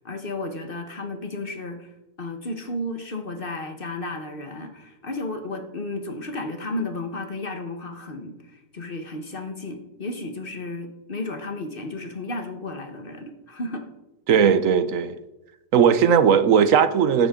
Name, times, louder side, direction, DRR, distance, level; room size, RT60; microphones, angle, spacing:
voice 1, 0.0-1.9 2.2-13.9, left 2 dB, 45° left, 1.5 m, -33 dB
voice 2, 14.3-15.1 15.7-17.3, right 7 dB, 75° right, 1.2 m, -17 dB
14.5 x 12.0 x 3.7 m
omnidirectional pair, 1.4 m